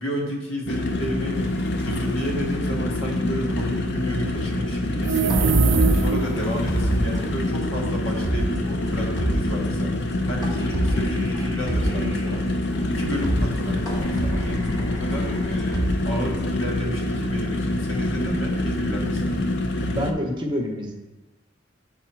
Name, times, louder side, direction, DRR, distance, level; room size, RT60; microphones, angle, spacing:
voice 1, 0.0-1.4 1.8-12.4 12.9-14.6 14.8-19.4, equal, 70° left, -1 dB, 1.4 m, -31 dB
sound 1, 0.7-20.1, left 1 dB, 55° left, 0.6 m, -26 dB
sound 2, 4.9-6.5, right 4 dB, 60° right, 0.4 m, -21 dB
sound 3, 5.3-7.2 7.6-7.7 8.1-8.6 8.9-9.0 9.2-9.7 10.4-12.3 12.7-12.8 13.1-13.6 13.9-16.4, right 1 dB, 15° left, 1.2 m, -28 dB
voice 2, 19.9-20.9, equal, 20° right, 1 dB, 0.8 m, -27 dB
7.1 x 3.9 x 4.5 m, 1.1 s
head